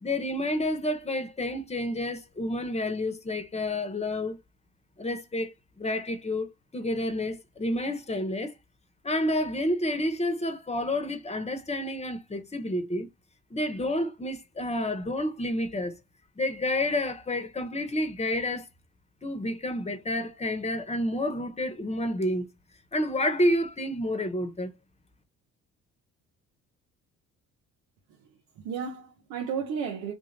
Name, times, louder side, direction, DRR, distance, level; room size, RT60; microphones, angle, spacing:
voice 1, 0.0-4.4 5.0-8.5 9.0-13.1 13.5-16.0 16.4-18.7 19.2-22.5 22.9-24.7, left 1 dB, 20° left, 1.0 m, -29 dB
voice 2, 28.1-30.1, right 6 dB, 85° right, 0.8 m, -34 dB
3.4 x 2.6 x 3.2 m
supercardioid pair, 75°, 32 cm